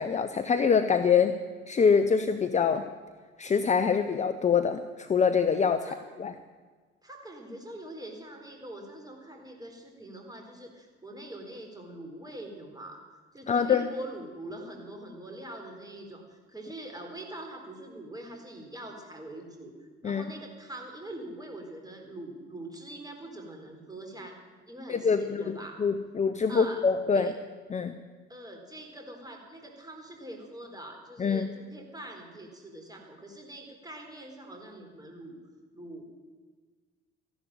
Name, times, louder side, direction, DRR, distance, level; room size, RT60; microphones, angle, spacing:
voice 1, 0.0-1.3 1.7-2.8 3.4-5.9 6.2-6.3 13.5-13.9 20.0-20.2 24.9-27.3 27.7-27.9 31.2-31.5, left 6 dB, 20° left, 9 dB, 0.8 m, -25 dB
voice 2, 7.0-13.0 13.3-24.4 24.7-25.8 26.5-26.8 27.1-27.4 28.3-35.4 35.7-36.0, right 1 dB, 10° right, 2 dB, 4.2 m, -43 dB
14.0 x 11.5 x 9.0 m, 1.5 s
figure-of-eight pair, 55°, 33 cm